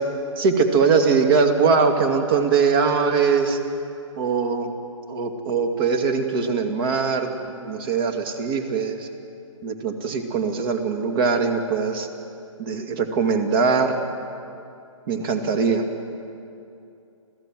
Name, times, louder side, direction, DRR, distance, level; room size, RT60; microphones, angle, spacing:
voice 1, 0.4-3.6 4.2-4.7 5.1-7.3 7.6-9.1 9.6-12.1 12.6-14.0 15.1-15.8, right 5 dB, 40° right, 5 dB, 2.4 m, -21 dB
27.0 x 16.0 x 7.7 m, 2.6 s
hypercardioid pair, 145°, 17 cm